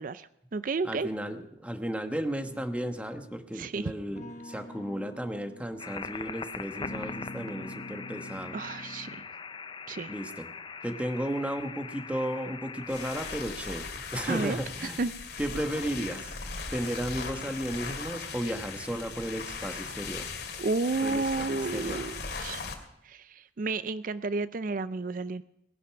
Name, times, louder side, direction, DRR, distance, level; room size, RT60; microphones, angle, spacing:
voice 1, 0.0-1.1 3.5-3.9 8.5-9.1 9.9-10.1 14.3-14.6 15.0-15.1 20.6-22.7 23.0-25.4, right 3 dB, 50° right, 14 dB, 0.5 m, -31 dB
voice 2, 0.8-8.5 10.1-10.5 10.8-15.0 15.4-16.3 16.7-20.3 21.0-22.0, equal, 5° right, 6 dB, 1.2 m, -34 dB
sound 1, 2.4-3.5 4.1-6.4 6.8-9.4, left 1 dB, 45° left, 1.1 m, -45 dB
sound 2, 5.8-13.3, left 5 dB, 30° left, 0.5 m, -41 dB
sound 3, 12.8-22.7, left 4 dB, 65° left, 2.4 m, -38 dB
18.5 x 11.0 x 5.8 m, 0.83 s
head